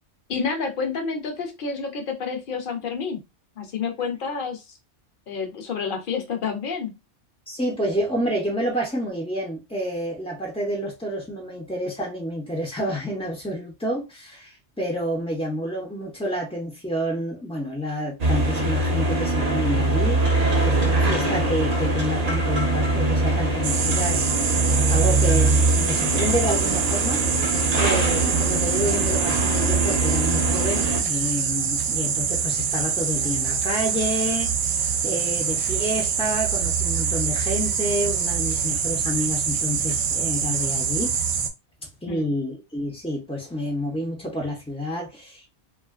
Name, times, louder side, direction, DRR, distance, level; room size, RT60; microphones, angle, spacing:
voice 1, 0.3-3.2 3.6-4.8 5.3-7.0 42.1-42.3, left 5 dB, 55° left, 0.8 m, -29 dB
voice 2, 7.5-41.1 42.0-45.5, equal, 10° left, 0.4 m, -29 dB
sound 1, 18.2-31.0, right 2 dB, 45° right, 0.6 m, -22 dB
sound 2, 23.6-41.5, right 7 dB, 75° right, 0.8 m, -25 dB
2.7 x 2.4 x 2.4 m
omnidirectional pair, 1.2 m